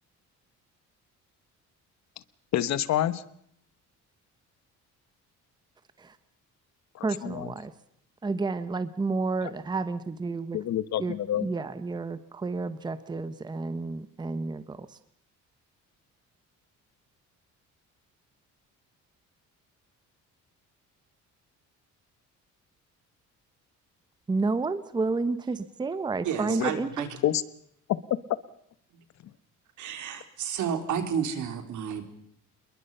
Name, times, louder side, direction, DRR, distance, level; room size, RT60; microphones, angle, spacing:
voice 1, 2.5-3.2 6.9-7.5 10.5-11.5 26.5-26.7 27.2-27.4 28.1-28.2, left 12 dB, 60° left, 16 dB, 1.2 m, -27 dB
voice 2, 7.0-7.7 8.2-10.6 11.0-15.0 24.3-27.1, right 3 dB, 15° right, 13 dB, 1.0 m, -30 dB
voice 3, 26.2-27.1 29.8-32.0, right 8 dB, 70° right, 8 dB, 4.0 m, -31 dB
28.0 x 22.0 x 5.6 m, 0.71 s
cardioid pair, 165°, 31 cm